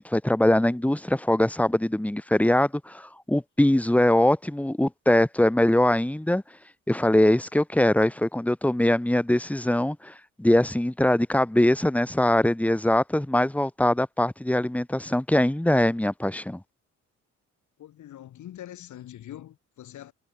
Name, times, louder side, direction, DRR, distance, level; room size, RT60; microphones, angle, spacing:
voice 1, 0.0-6.4 6.9-16.6, left 1 dB, 5° left, 2.6 m, -22 dB
voice 2, 17.8-20.1, left 12 dB, 75° left, 4.4 m, -43 dB
cardioid pair, 90°, 30 cm